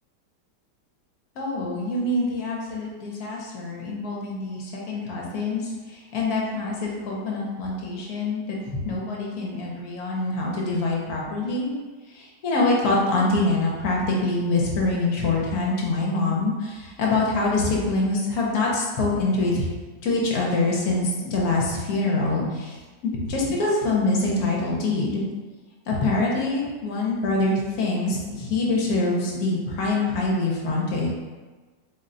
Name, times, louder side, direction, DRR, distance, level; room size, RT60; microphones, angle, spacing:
voice 1, 1.4-11.7 12.1-19.7 20.0-22.8 23.0-25.2 25.9-31.1, left 2 dB, 70° left, -3 dB, 1.1 m, -25 dB
3.9 x 2.2 x 3.8 m, 1.3 s
omnidirectional pair, 1.8 m